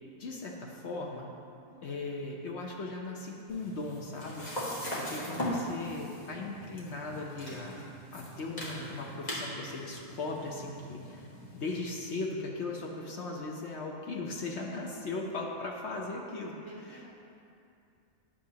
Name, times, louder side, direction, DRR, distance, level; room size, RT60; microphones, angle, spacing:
voice 1, 0.2-1.3 1.8-4.5 4.9-11.3 11.5-16.5 16.9-17.0, left 3 dB, 60° left, -1 dB, 0.9 m, -38 dB
voice 2, 1.6-2.1 16.5-17.1, right 1 dB, 50° right, -3 dB, 0.8 m, -54 dB
sound 1, 3.5-11.8, equal, 30° left, 1.5 m, -40 dB
10.0 x 6.9 x 2.8 m, 2.6 s
omnidirectional pair, 1.5 m